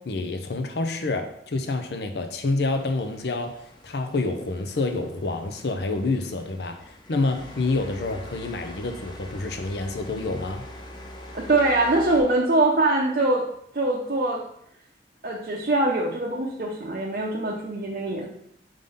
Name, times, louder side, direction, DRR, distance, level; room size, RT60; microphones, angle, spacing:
voice 1, 0.0-10.6, left 3 dB, 70° left, 5 dB, 0.6 m, -28 dB
sound 1, 2.7-12.2, equal, 25° left, 0.9 m, -44 dB
voice 2, 11.3-13.5 13.7-14.5 15.2-18.3, right 2 dB, 50° right, -2 dB, 0.6 m, -23 dB
5.2 x 3.8 x 5.4 m, 0.72 s
head